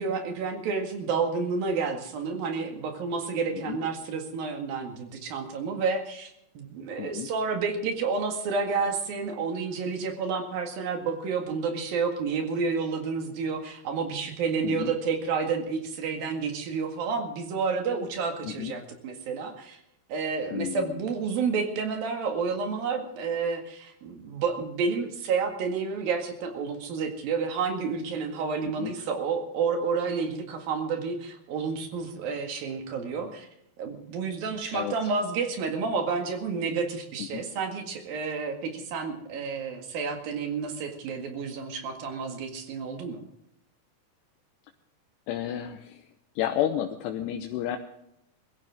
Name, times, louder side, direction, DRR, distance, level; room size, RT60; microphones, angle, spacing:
voice 1, 0.0-19.8 20.1-33.5 33.8-43.2, right 5 dB, 60° right, 4 dB, 3.6 m, -30 dB
voice 2, 7.0-7.3 14.6-14.9 18.4-18.7 20.5-21.1 28.8-28.9 34.7-35.1 37.2-37.4 45.3-46.1 46.4-47.8, left 11 dB, 80° left, 4 dB, 3.1 m, -31 dB
22.5 x 15.0 x 3.6 m, 0.77 s
omnidirectional pair, 4.8 m